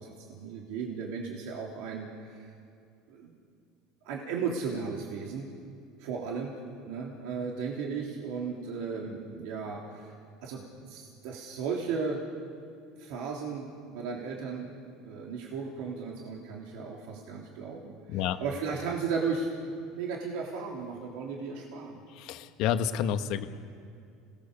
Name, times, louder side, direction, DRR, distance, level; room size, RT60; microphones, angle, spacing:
voice 1, 0.0-2.5 3.1-3.3 4.0-5.5 6.0-6.5 6.9-10.1 10.4-12.2 13.0-14.7 15.0-19.5 19.9-22.0, right 5 dB, 75° right, -1 dB, 3.2 m, -35 dB
voice 2, 18.1-18.4 22.1-23.5, left 9 dB, 65° left, 8 dB, 1.4 m, -29 dB
29.5 x 18.5 x 6.9 m, 2.4 s
supercardioid pair, 115°, 0 cm